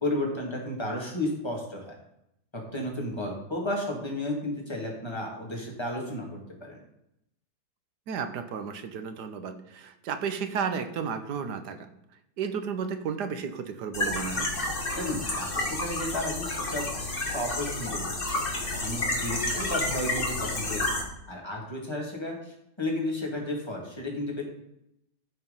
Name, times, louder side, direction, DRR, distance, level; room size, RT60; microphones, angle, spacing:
voice 1, 0.0-1.9 2.5-6.8 15.0-18.5 18.8-24.4, left 1 dB, 15° left, -1 dB, 2.5 m, -33 dB
voice 2, 8.1-11.9 12.4-14.5, right 6 dB, 75° right, 9 dB, 1.5 m, -33 dB
sound 1, 13.9-21.0, left 2 dB, 35° left, 1.9 m, -30 dB
13.0 x 4.7 x 5.4 m, 0.80 s
omnidirectional pair, 1.8 m